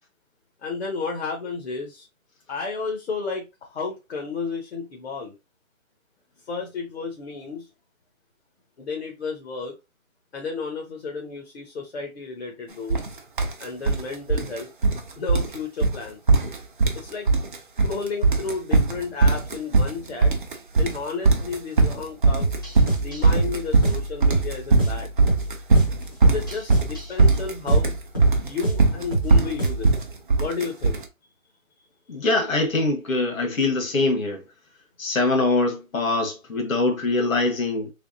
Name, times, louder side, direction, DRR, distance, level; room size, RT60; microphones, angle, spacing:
voice 1, 0.6-2.1 2.5-5.3 6.5-7.7 8.8-9.7 10.3-13.0 13.6-14.7 15.2-16.2 16.9-17.3 17.8-20.3 20.8-22.5 23.0-25.1 26.2-28.0 28.4-29.9 30.4-31.0, left 4 dB, 50° left, 0.9 m, -32 dB
sound 1, 12.9-13.1 13.4-14.0 14.3-15.0 15.3-15.5 15.8-16.0 16.3-17.0 17.3-17.9 18.2-31.0, right 3 dB, 40° right, 0.6 m, -19 dB
sound 2, 22.4-30.0, right 2 dB, 15° left, 0.6 m, -28 dB
voice 2, 32.1-34.4 35.0-37.9, left 2 dB, 70° left, 1.5 m, -23 dB
3.4 x 3.4 x 2.6 m
hypercardioid pair, 165°, 41 cm